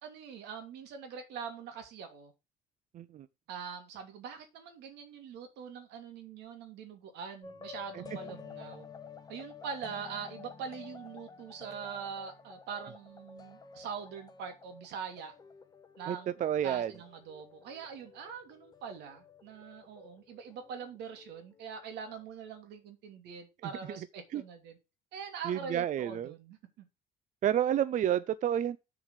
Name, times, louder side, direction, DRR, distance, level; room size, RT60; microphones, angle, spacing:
voice 1, 0.0-2.3 3.5-8.9 9.3-15.3 16.0-16.3 16.6-24.8 25.1-26.8, right 6 dB, 85° right, 2.7 m, -43 dB
voice 2, 2.9-3.3 7.9-8.0 16.1-16.9 24.3-24.4 25.4-26.3 27.4-28.8, right 10 dB, 50° right, 0.5 m, -30 dB
sound 1, 7.4-22.4, left 5 dB, 20° left, 1.5 m, -51 dB
7.3 x 4.9 x 6.6 m
cardioid pair, 110°, 17 cm